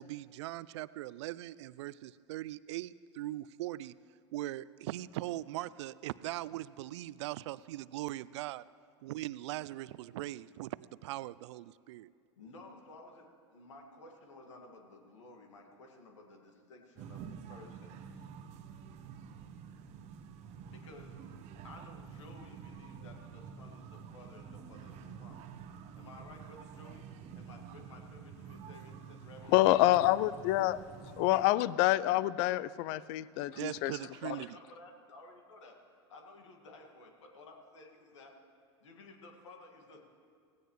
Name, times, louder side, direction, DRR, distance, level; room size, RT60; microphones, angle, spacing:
voice 1, 0.0-3.9 4.3-8.6 9.0-12.1 33.6-34.5, right 15 dB, 70° right, 19 dB, 0.4 m, -40 dB
voice 2, 12.4-17.2 17.5-18.3 20.7-21.2 21.6-25.4 25.9-27.1 27.3-29.6 32.1-32.2 34.3-35.8 36.1-38.3 38.8-40.0, left 2 dB, 80° left, 2 dB, 2.1 m, -54 dB
sound 1, 17.0-31.4, right 7 dB, 50° right, 1.1 m, -49 dB
voice 3, 29.5-30.8 31.2-33.9 34.2-34.3, left 16 dB, 55° left, 19 dB, 0.5 m, -27 dB
17.0 x 16.5 x 3.2 m, 2.1 s
hypercardioid pair, 95°, 15 cm